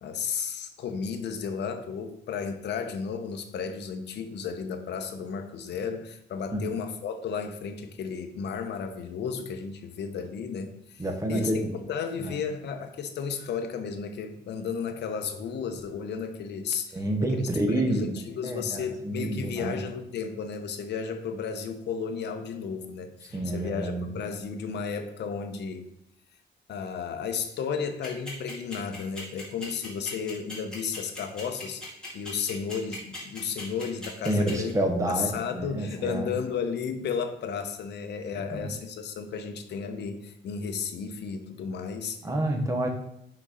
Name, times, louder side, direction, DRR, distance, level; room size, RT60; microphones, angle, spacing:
voice 1, 0.0-11.0 11.3-11.5 11.9-17.0 17.3-25.9 26.7-34.7 35.1-42.2, left 6 dB, 65° left, 6 dB, 0.8 m, -33 dB
voice 2, 11.0-11.7 12.2-12.4 16.9-18.2 18.4-19.8 23.3-24.1 34.3-36.3 38.3-38.7 42.2-42.9, right 1 dB, 15° right, 3 dB, 0.9 m, -28 dB
sound 1, 28.0-34.7, left 2 dB, 5° left, 2.5 m, -39 dB
6.0 x 4.2 x 5.0 m, 0.77 s
wide cardioid pair, 175°, 19 cm